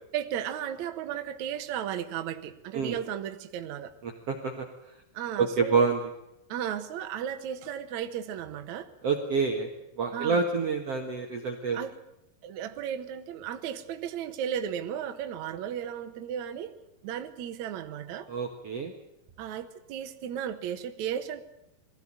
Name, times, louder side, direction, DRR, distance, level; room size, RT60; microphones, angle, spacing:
voice 1, 0.1-3.9 5.1-5.9 6.5-8.9 10.1-10.4 11.7-12.0 12.4-16.7 17.0-18.3 19.4-21.4, right 9 dB, 90° right, 7 dB, 1.6 m, -35 dB
voice 2, 4.0-4.6 5.4-6.1 9.0-9.7 10.0-11.8 18.3-18.9, right 5 dB, 75° right, 3 dB, 1.4 m, -27 dB
22.5 x 15.5 x 8.9 m, 0.85 s
omnidirectional pair, 5.4 m